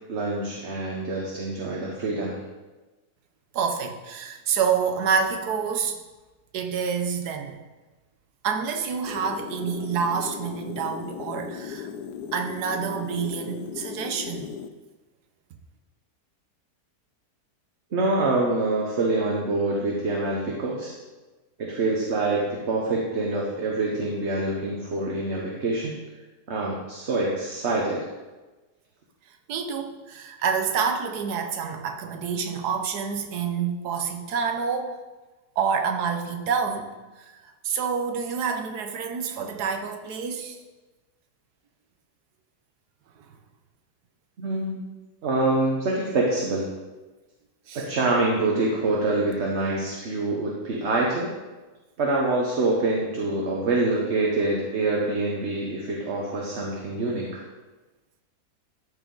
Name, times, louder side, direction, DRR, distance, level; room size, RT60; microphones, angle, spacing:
voice 1, 0.1-2.4 17.9-20.9 21.6-25.9 26.5-28.1 44.4-44.8 45.2-46.7 47.7-51.3 52.0-57.5, right 2 dB, 50° right, -2 dB, 1.3 m, -25 dB
voice 2, 3.5-6.0 6.5-7.6 8.4-11.9 12.3-14.5 29.5-35.0 35.6-36.9 37.2-40.6 43.2-43.3 47.7-47.9, right 6 dB, 85° right, 5 dB, 1.4 m, -28 dB
sound 1, 9.1-14.7, left 7 dB, 85° left, 1.2 m, -37 dB
13.5 x 4.8 x 3.9 m, 1.2 s
omnidirectional pair, 1.7 m